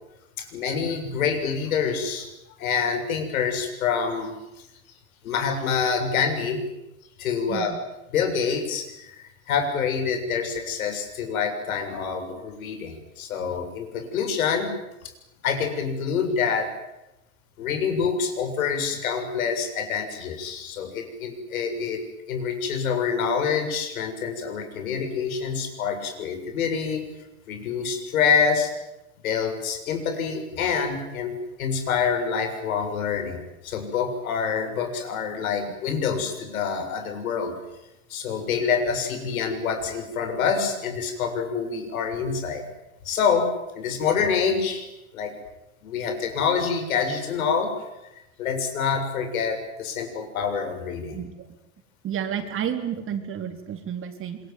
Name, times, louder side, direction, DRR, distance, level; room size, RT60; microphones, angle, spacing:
voice 1, 0.4-2.3 2.6-4.7 5.2-6.6 7.2-7.7 8.1-14.7 15.4-16.7 17.6-22.0 22.3-27.0 27.5-28.7 29.2-37.6 38.1-42.7 43.0-44.9 45.1-45.4 45.8-47.9 48.4-51.2, left 6 dB, 80° left, 6 dB, 7.3 m, -26 dB
voice 2, 7.5-7.9 35.7-35.8 51.1-51.6 52.0-54.4, right 9 dB, 30° right, 7 dB, 4.0 m, -31 dB
26.5 x 23.0 x 9.5 m, 0.93 s
supercardioid pair, 125°, 41 cm